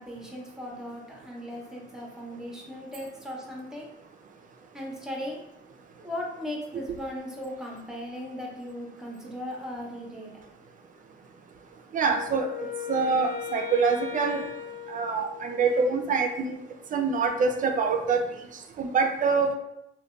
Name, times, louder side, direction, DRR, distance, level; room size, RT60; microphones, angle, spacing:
voice 1, 0.0-3.9 4.7-5.4 6.0-10.3, left 1 dB, 5° right, -2 dB, 0.6 m, -37 dB
voice 2, 11.9-12.5 12.9-14.4 14.9-16.6 16.9-18.2 18.8-19.5, right 5 dB, 40° right, 4 dB, 0.4 m, -25 dB
Wind instrument woodwind instrument, 12.1-16.0, left 8 dB, 45° left, 0.4 m, -37 dB
2.6 x 2.2 x 2.3 m, 0.82 s
cardioid pair, 90°, 20 cm